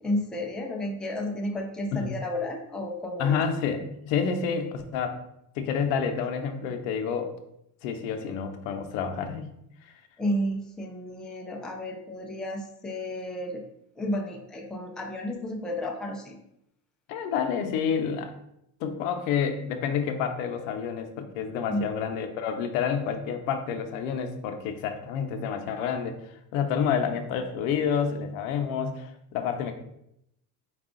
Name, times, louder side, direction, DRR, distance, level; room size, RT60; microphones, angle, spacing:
voice 1, 0.0-3.4 10.2-13.6 14.0-16.4 21.7-21.8, left 1 dB, ahead, 0 dB, 0.4 m, -32 dB
voice 2, 3.2-5.2 5.6-7.3 7.8-9.5 9.8-9.9 17.1-18.3 18.8-29.7, left 7 dB, 90° left, 6 dB, 0.7 m, -29 dB
4.6 x 2.4 x 3.6 m, 0.79 s
cardioid pair, 130°, 39 cm